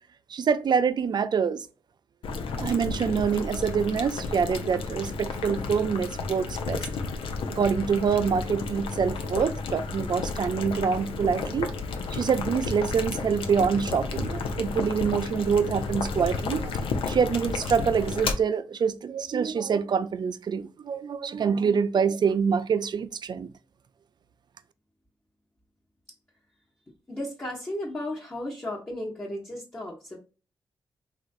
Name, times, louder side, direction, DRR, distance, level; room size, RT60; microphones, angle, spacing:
voice 1, 0.3-1.7 2.6-6.9 7.5-11.7 12.1-16.7 17.1-23.5, right 6 dB, 50° right, 0.3 m, -26 dB
Boiling, 2.2-18.3, left 4 dB, 75° left, 0.5 m, -32 dB
voice 2, 27.1-30.2, left 1 dB, 25° left, 0.9 m, -34 dB
3.0 x 2.4 x 2.5 m
supercardioid pair, 40°, 9 cm